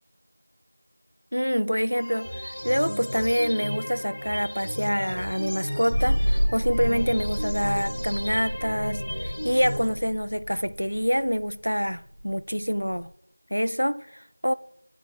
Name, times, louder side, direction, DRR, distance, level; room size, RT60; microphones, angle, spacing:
voice 1, 1.3-13.1 13.5-14.5, equal, 80° left, 0.3 m, -26 dB
sound 1, 1.9-9.9, equal, 10° left, 0.9 m, -34 dB
sound 2, 5.9-13.0, equal, 40° right, 1.2 m, -30 dB
9.7 x 5.0 x 2.8 m
figure-of-eight pair, 180°, 0 cm